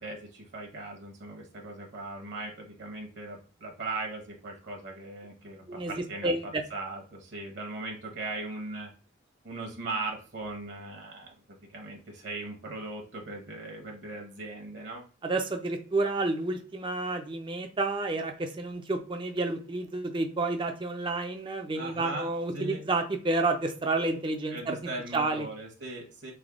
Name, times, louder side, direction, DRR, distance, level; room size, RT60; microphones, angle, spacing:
voice 1, 0.0-8.9 9.4-11.3 11.7-15.0 21.7-22.8 24.5-26.3, right 2 dB, 60° right, 0 dB, 0.8 m, -39 dB
voice 2, 5.7-6.6 15.2-24.8 25.1-25.5, right 2 dB, 25° right, 5 dB, 0.4 m, -30 dB
3.4 x 2.1 x 3.6 m, 0.39 s
head